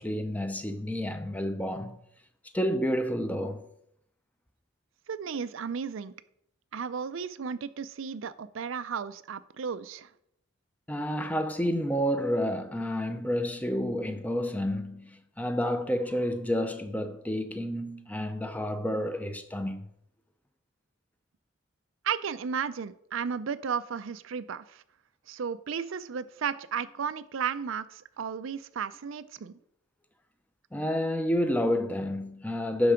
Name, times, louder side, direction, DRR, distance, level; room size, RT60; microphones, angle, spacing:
voice 1, 0.0-2.0 2.5-3.7 10.9-19.9 30.7-32.9, equal, 10° left, 0.6 m, -29 dB
voice 2, 5.1-6.1 6.7-10.1 22.0-24.8 25.3-29.5, right 6 dB, 75° right, 0.4 m, -34 dB
11.5 x 4.6 x 5.0 m
head